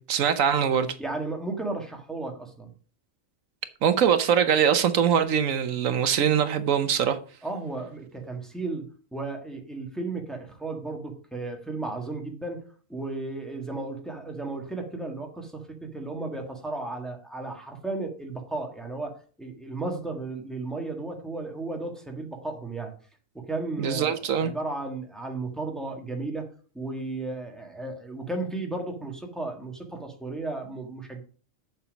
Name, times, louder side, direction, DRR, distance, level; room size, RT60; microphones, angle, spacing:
voice 1, 0.0-0.9 3.8-7.2 23.8-24.5, right 8 dB, 85° right, 1.3 m, -23 dB
voice 2, 1.0-2.7 7.4-15.7 15.9-22.9 23.3-26.5 26.7-31.2, right 2 dB, ahead, 1.5 m, -34 dB
7.1 x 7.1 x 5.1 m
omnidirectional pair, 1.3 m